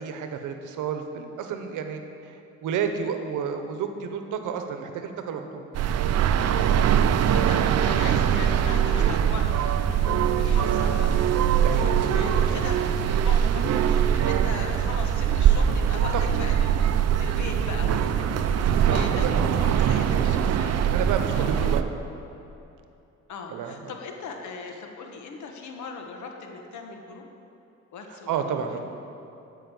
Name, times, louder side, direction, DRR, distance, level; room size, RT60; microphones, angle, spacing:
voice 1, 0.0-5.6 10.5-10.6 11.6-12.0 12.5-12.6 14.3-14.4 18.6-19.6 20.2-20.3 20.9-21.9 23.5-23.9 28.3-28.8, right 7 dB, 80° right, 6 dB, 0.9 m, -31 dB
sound 1, 5.7-21.8, right 9 dB, 60° right, 0.5 m, -22 dB
voice 2, 6.4-20.8 21.3-21.7 23.3-27.2 27.9-28.8, left 4 dB, 75° left, 3 dB, 1.2 m, -39 dB
8.9 x 5.4 x 7.6 m, 2.7 s
cardioid pair, 90°, 30 cm